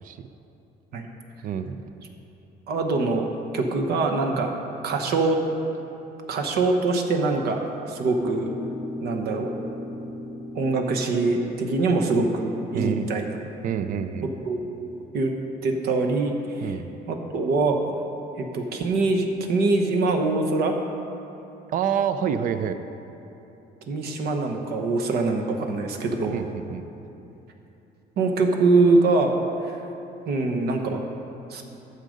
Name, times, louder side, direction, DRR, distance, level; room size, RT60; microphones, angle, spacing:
voice 1, 1.4-1.8 12.7-13.1 13.6-14.3 16.6-16.9 21.7-22.8 26.3-26.8, right 8 dB, 55° right, 10 dB, 0.5 m, -27 dB
voice 2, 2.7-3.3 3.5-4.5 4.8-5.4 6.3-8.5 9.0-9.5 10.5-13.4 14.5-15.3 15.6-16.7 17.1-18.0 18.4-20.7 23.9-26.4 28.2-29.3 29.6-29.8 30.3-31.1 31.5-31.6, right 3 dB, 70° right, 3 dB, 1.0 m, -23 dB
sound 1, 8.2-14.6, left 1 dB, ahead, 1.1 m, -38 dB
9.9 x 6.6 x 5.1 m, 3.0 s
cardioid pair, 110°, 17 cm